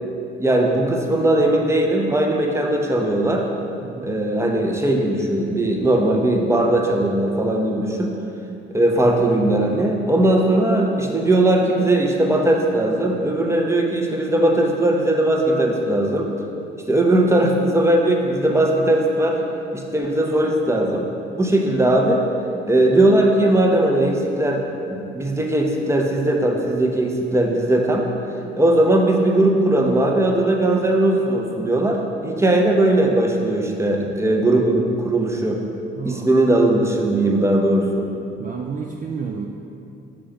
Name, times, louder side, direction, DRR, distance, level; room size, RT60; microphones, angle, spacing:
voice 1, 0.4-3.5 4.0-8.1 8.7-16.3 16.9-19.4 19.7-22.2 22.7-28.0 28.6-35.6 36.0-38.0, right 1 dB, 10° right, 1 dB, 0.9 m, -19 dB
voice 2, 36.0-36.3 38.4-39.5, right 5 dB, 25° right, 0 dB, 0.5 m, -30 dB
6.1 x 4.5 x 5.0 m, 2.7 s
figure-of-eight pair, 45°, 29 cm